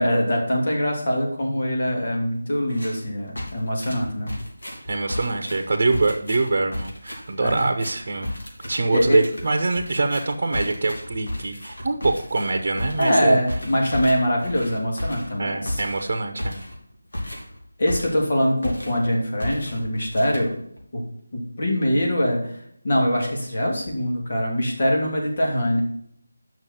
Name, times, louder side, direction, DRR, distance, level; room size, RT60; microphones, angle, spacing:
voice 1, 0.0-4.3 7.4-7.7 8.9-9.2 13.0-15.8 17.8-20.5 20.9-21.0 21.3-22.6 22.8-25.8, equal, 50° left, -1 dB, 2.9 m, -23 dB
sound 1, 2.7-3.0 3.4-18.3 18.6-19.1 19.4-20.8, left 1 dB, 70° left, 2.9 m, -34 dB
voice 2, 4.9-8.3 8.7-13.4 15.4-16.6, right 3 dB, 45° right, 5 dB, 0.9 m, -24 dB
8.9 x 6.1 x 4.4 m, 0.70 s
figure-of-eight pair, 165°, 0 cm